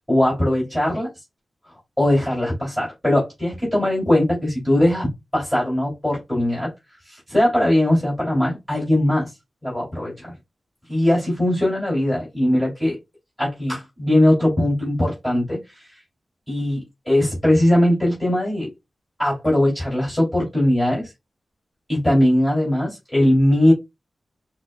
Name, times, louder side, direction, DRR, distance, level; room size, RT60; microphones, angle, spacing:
voice 1, 0.1-1.1 2.0-6.7 7.1-9.3 9.6-10.3 10.9-13.0 13.4-15.9 16.5-18.7 19.2-21.1 21.9-23.7, left 1 dB, 5° left, 2.7 m, -20 dB
6.4 x 2.2 x 2.3 m
cardioid pair, 70°, 0 cm